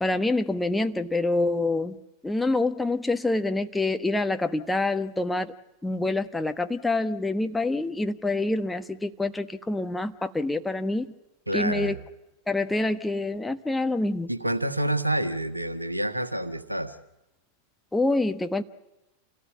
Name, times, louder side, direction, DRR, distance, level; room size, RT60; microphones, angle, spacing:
voice 1, 0.0-2.0 2.2-5.5 5.8-11.1 11.5-12.0 12.5-14.3 17.9-18.6, left 2 dB, 5° left, 8 dB, 1.2 m, -26 dB
voice 2, 11.5-12.0 14.3-17.0, right 1 dB, 85° right, 9 dB, 1.5 m, -28 dB
28.0 x 17.5 x 8.7 m, 0.97 s
figure-of-eight pair, 90°, 0 cm